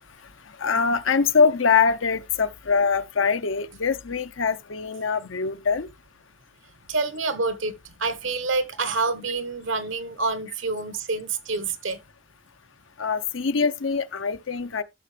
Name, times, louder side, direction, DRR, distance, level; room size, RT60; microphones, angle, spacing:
voice 1, 0.6-5.9 13.0-14.8, left 5 dB, 85° left, 0.8 m, -23 dB
voice 2, 6.9-12.0, right 3 dB, 80° right, 1.2 m, -27 dB
13.0 x 6.7 x 3.3 m
head